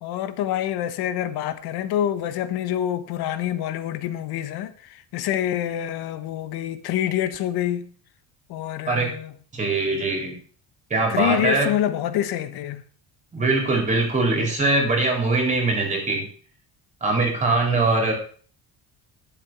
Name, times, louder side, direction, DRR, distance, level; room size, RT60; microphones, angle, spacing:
voice 1, 0.0-7.9 8.5-9.3 11.1-12.8, left 11 dB, 65° left, 1.3 m, -26 dB
voice 2, 9.5-10.4 10.9-11.7 13.3-16.3 17.0-18.1, right 3 dB, 15° right, 3.7 m, -22 dB
12.0 x 7.2 x 6.1 m
cardioid pair, 175°, 41 cm